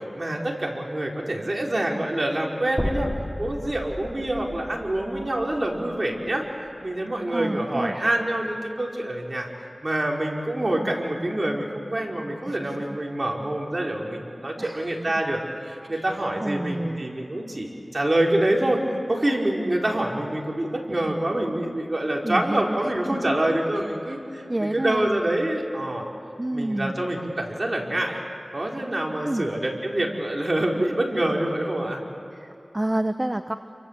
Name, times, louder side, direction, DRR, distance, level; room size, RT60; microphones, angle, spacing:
voice 1, 0.2-3.1 3.4-6.4 6.8-9.5 9.8-18.8 19.1-26.0 26.5-28.2 28.5-32.0, right 1 dB, 45° right, -1 dB, 4.9 m, -26 dB
sound 1, 2.8-7.0, equal, 10° left, 1.3 m, -34 dB
voice 2, 7.3-7.9 12.4-13.0 14.6-15.2 15.8-16.1 16.4-17.1 22.2-22.9 23.7-23.9 24.5-25.1 26.4-26.9 29.2-29.5 32.3-33.5, right 1 dB, 30° right, 8 dB, 1.0 m, -29 dB
29.5 x 24.0 x 8.3 m, 2.8 s
wide cardioid pair, 45°, 0 cm